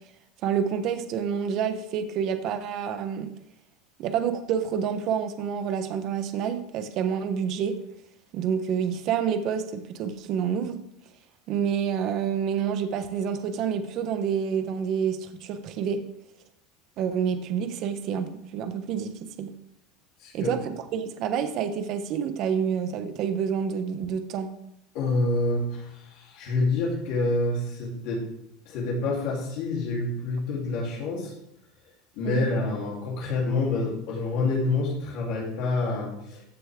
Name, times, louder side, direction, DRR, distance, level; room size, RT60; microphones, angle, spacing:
voice 1, 0.4-3.3 4.0-7.7 8.3-10.8 11.5-16.0 17.0-19.5 20.3-24.5 32.2-32.5, right 7 dB, 45° right, 8 dB, 1.0 m, -28 dB
voice 2, 20.2-20.5 24.9-28.2 28.7-31.3 32.2-36.4, left 2 dB, 55° left, -4 dB, 3.3 m, -27 dB
14.0 x 6.9 x 3.7 m, 0.80 s
supercardioid pair, 155°, 0 cm